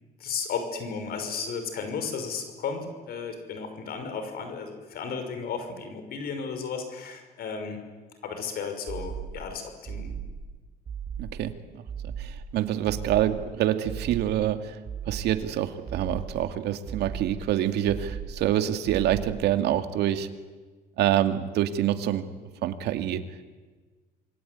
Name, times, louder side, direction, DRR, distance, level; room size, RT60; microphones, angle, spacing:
voice 1, 0.2-7.8 8.2-10.1, left 5 dB, 65° left, 7 dB, 5.8 m, -34 dB
sound 1, 8.9-9.5 9.8-10.5 10.8-11.5 11.9-12.5 12.8-13.5 13.8-14.5 14.8-15.5 15.9-16.5 16.9-17.5 17.9-18.5 18.9-19.5, right 7 dB, 40° right, 3.7 m, -37 dB
voice 2, 11.2-14.8 15.1-20.3 21.0-22.3 22.6-23.2, right 11 dB, 75° right, 8 dB, 2.3 m, -26 dB
27.0 x 22.5 x 9.6 m, 1.4 s
cardioid pair, 110°, 17 cm